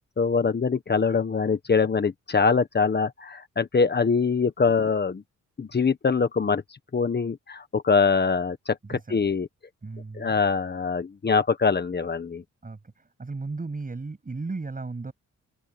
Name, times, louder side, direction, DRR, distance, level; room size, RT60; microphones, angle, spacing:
voice 1, 0.0-5.2 5.6-6.6 6.9-8.8 9.1-9.5 10.1-12.4, left 5 dB, 35° left, 1.4 m, -23 dB
voice 2, 8.8-9.2 9.8-10.4 12.6-15.1, right 3 dB, 30° right, 7.9 m, -35 dB
open air
cardioid pair, 100°, 30 cm